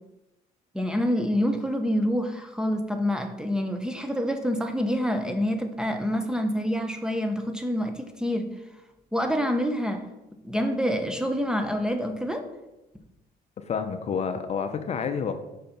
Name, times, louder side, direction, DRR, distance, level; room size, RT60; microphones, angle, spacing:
voice 1, 0.7-8.5 9.1-10.1 10.4-12.5, equal, 5° right, 6 dB, 0.7 m, -27 dB
voice 2, 13.6-15.3, left 6 dB, 40° left, 8 dB, 0.6 m, -29 dB
5.5 x 4.4 x 5.1 m, 0.96 s
cardioid pair, 110°, 17 cm